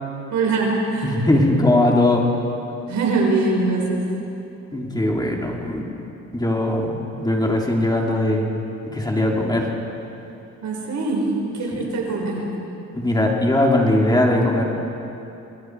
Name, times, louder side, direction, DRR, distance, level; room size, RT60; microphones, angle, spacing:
voice 1, 0.3-1.2 2.9-4.1 10.6-12.4, right 3 dB, 70° right, -1 dB, 5.4 m, -22 dB
voice 2, 1.0-2.3 4.7-5.9 6.3-8.5 8.8-9.7 11.7-11.9 12.9-14.6, left 1 dB, 15° left, -1 dB, 3.3 m, -20 dB
28.5 x 21.0 x 4.8 m, 2.9 s
cardioid pair, 90°, 30 cm